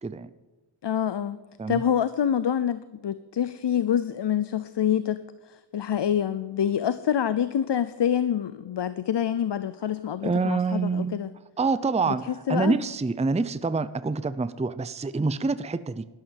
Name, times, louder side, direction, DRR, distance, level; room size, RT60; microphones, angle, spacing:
voice 1, 0.8-1.4 1.7-11.3 12.1-12.8, left 9 dB, 55° left, 14 dB, 0.7 m, -26 dB
voice 2, 10.2-11.2 11.6-16.0, right 4 dB, 15° right, 14 dB, 0.5 m, -26 dB
12.5 x 12.0 x 7.6 m, 1.2 s
wide cardioid pair, 90°, 50 cm